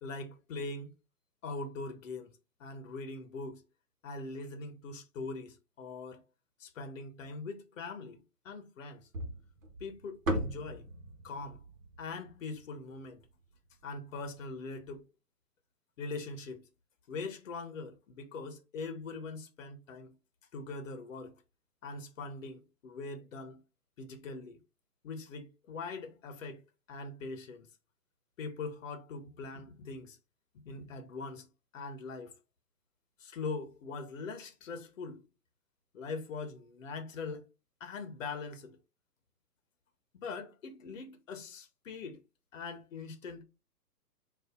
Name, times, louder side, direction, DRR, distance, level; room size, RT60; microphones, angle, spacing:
voice 1, 0.0-0.9 1.4-2.3 2.6-3.6 4.0-6.2 6.6-9.1 9.8-10.8 11.2-11.6 12.0-13.2 13.8-15.1 16.0-16.7 17.1-20.2 20.5-21.3 21.8-23.6 24.0-24.6 25.0-26.6 26.9-27.7 28.4-30.2 30.5-31.5 31.7-32.3 33.2-35.2 35.9-37.5 37.8-38.8 40.2-42.2 42.5-43.4, left 3 dB, 55° left, 0.9 m, -42 dB
sound 1, 9.1-13.4, right 1 dB, 55° right, 1.4 m, -38 dB
4.0 x 2.7 x 3.6 m
hypercardioid pair, 150°, 48 cm